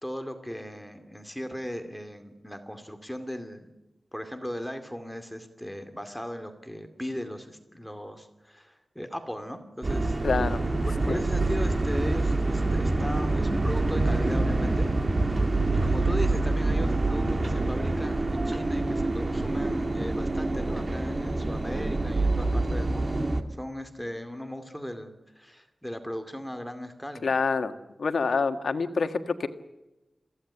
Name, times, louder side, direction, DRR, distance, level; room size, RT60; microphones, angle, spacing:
voice 1, 0.0-3.7 4.1-10.2 10.8-14.9 15.7-23.2 23.6-27.3, equal, 5° left, 7 dB, 2.4 m, -37 dB
sound 1, 9.8-23.4, right 2 dB, 40° right, 2.1 m, -26 dB
voice 2, 10.2-10.6 11.1-11.2 27.2-29.5, left 4 dB, 85° left, 8 dB, 1.5 m, -27 dB
22.5 x 16.0 x 9.8 m, 1.0 s
wide cardioid pair, 90°, 0 cm